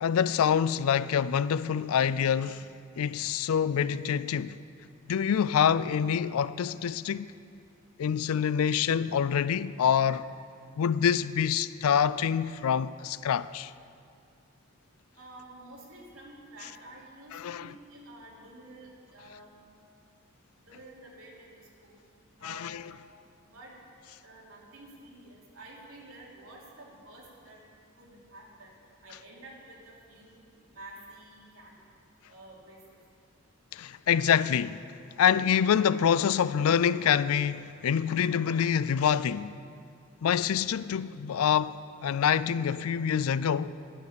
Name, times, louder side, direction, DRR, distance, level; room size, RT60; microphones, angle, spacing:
voice 1, 0.0-2.7 3.0-4.6 5.1-7.4 8.0-10.2 10.8-13.7 17.3-17.7 22.4-22.8 33.7-34.8 35.2-39.6 40.2-41.7 42.0-43.7, left 8 dB, 85° left, 0.4 m, -26 dB
voice 2, 15.1-19.5 20.7-22.0 22.4-22.8 23.4-23.7 24.2-27.6 28.0-28.7 29.0-31.8 32.2-33.0, right 2 dB, 75° right, 3.0 m, -50 dB
11.5 x 10.5 x 6.9 m
head